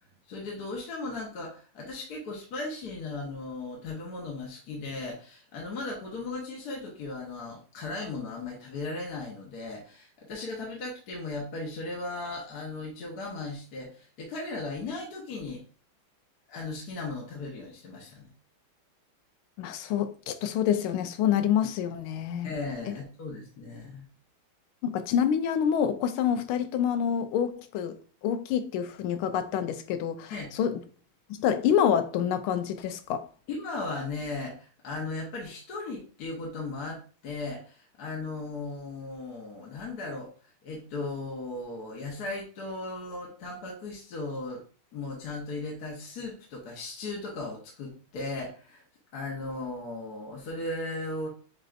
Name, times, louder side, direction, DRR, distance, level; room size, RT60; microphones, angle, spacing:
voice 1, 0.3-15.6 16.5-18.3 22.4-24.0 30.3-30.5 33.5-40.3 40.6-44.6 44.9-48.8 49.1-51.3, left 3 dB, 55° left, 1.3 m, -37 dB
voice 2, 19.6-22.5 24.8-30.8 31.3-33.3, left 9 dB, 80° left, 1.4 m, -27 dB
7.6 x 2.6 x 2.4 m
omnidirectional pair, 2.3 m